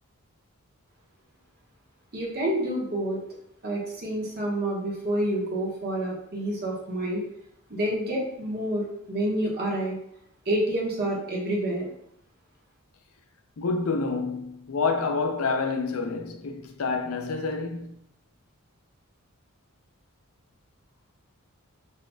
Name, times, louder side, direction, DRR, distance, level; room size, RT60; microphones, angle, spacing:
voice 1, 2.1-3.2 3.6-7.2 7.7-10.0 10.4-11.9, right 1 dB, 50° right, 1.3 m, -28 dB
voice 2, 13.6-18.0, left 4 dB, 75° left, 0.5 m, -28 dB
6.1 x 2.8 x 2.3 m
head